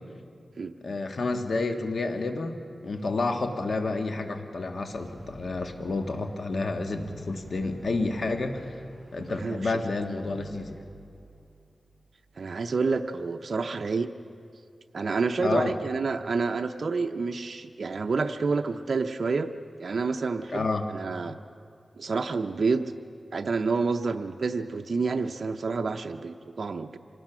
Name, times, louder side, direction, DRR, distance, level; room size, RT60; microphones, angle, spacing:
voice 1, 0.8-8.7 9.1-10.8 15.4-15.8 20.5-20.9, left 3 dB, 70° left, 5 dB, 1.6 m, -30 dB
sound 1, 4.9-13.0, equal, 20° left, 6.6 m, -52 dB
voice 2, 9.4-9.7 12.4-14.1 14.9-19.5 19.8-21.4 22.0-22.8 23.3-27.0, right 4 dB, 70° right, 5 dB, 0.7 m, -28 dB
25.5 x 19.0 x 6.1 m, 2.3 s
wide cardioid pair, 70°, 0 cm